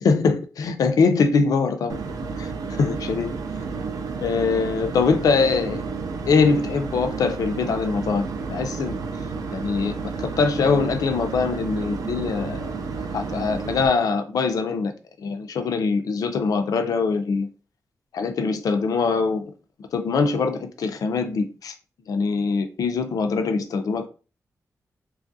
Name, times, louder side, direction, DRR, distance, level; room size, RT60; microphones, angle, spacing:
voice 1, 0.0-2.0 2.4-2.5 2.8-3.3 4.2-5.9 6.2-9.0 9.5-12.6 13.1-14.9 15.2-17.5 18.1-19.5 19.9-21.7 22.1-24.1, left 4 dB, 80° left, 0.4 m, -23 dB
sound 1, 1.9-13.9, right 4 dB, 80° right, 0.4 m, -31 dB
3.0 x 2.3 x 2.6 m
wide cardioid pair, 155°, 6 cm